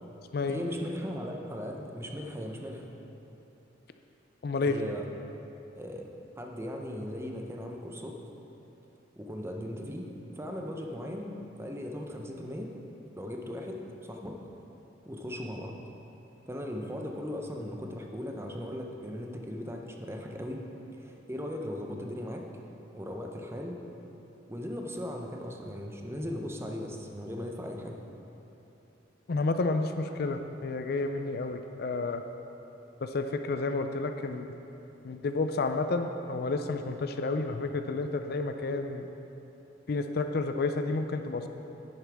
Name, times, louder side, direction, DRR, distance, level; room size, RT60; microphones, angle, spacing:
voice 1, 0.5-2.9 4.6-5.1 5.7-6.1 6.4-8.2 9.2-12.7 13.1-14.4 15.1-15.7 16.5-20.6 20.9-22.4 22.9-23.8 24.5-28.0, equal, 15° right, 1 dB, 0.7 m, -38 dB
voice 2, 4.4-4.8 29.3-32.2 33.0-34.5 35.0-39.1 39.9-41.5, left 3 dB, 55° left, 7 dB, 0.4 m, -30 dB
10.5 x 9.6 x 3.5 m, 3.0 s
head